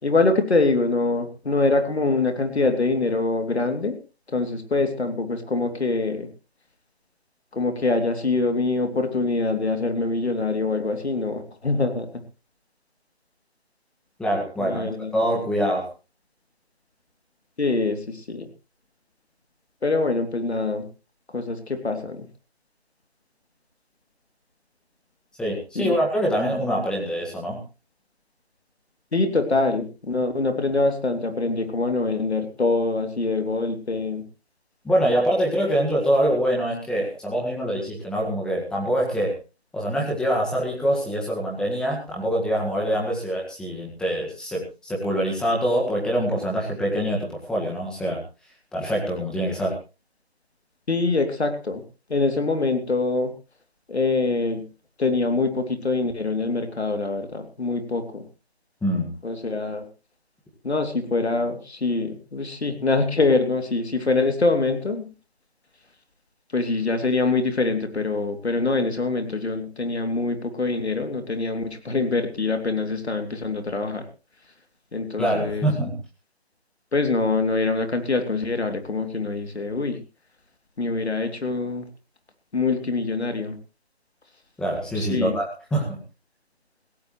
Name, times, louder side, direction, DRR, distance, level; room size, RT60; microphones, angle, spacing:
voice 1, 0.0-4.0 4.3-6.3 7.5-12.1 14.6-15.1 17.6-18.5 19.8-20.9 21.3-22.2 25.7-26.0 29.1-34.2 50.9-51.8 52.1-53.3 53.9-54.6 55.0-58.2 59.2-59.8 60.6-65.0 66.5-74.0 74.9-75.7 76.9-80.0 80.8-81.8 82.5-83.5 84.9-85.4, left 3 dB, 85° left, 6 dB, 3.0 m, -24 dB
voice 2, 14.2-15.9 25.4-27.6 34.8-39.3 39.7-48.2 48.7-49.8 58.8-59.1 75.2-76.0 84.6-86.0, equal, ahead, -2 dB, 1.8 m, -24 dB
16.5 x 16.5 x 3.2 m, 0.32 s
figure-of-eight pair, 160°, 32 cm